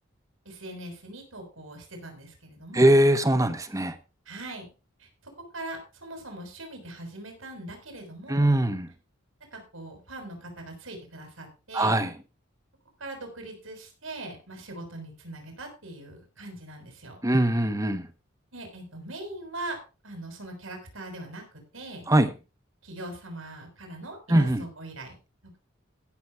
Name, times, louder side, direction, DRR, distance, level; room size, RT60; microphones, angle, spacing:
voice 1, 0.5-2.9 4.3-4.7 5.0-5.1 5.5-8.5 9.5-12.0 13.0-17.2 18.5-19.8 20.0-21.4 21.7-22.1 22.8-25.2, right 2 dB, 85° right, 5.7 m, -41 dB
voice 2, 2.7-3.9 8.3-8.9 11.7-12.1 17.2-18.0 22.1-22.3 24.3-24.6, right 1 dB, 15° right, 1.1 m, -21 dB
15.5 x 7.1 x 4.6 m
head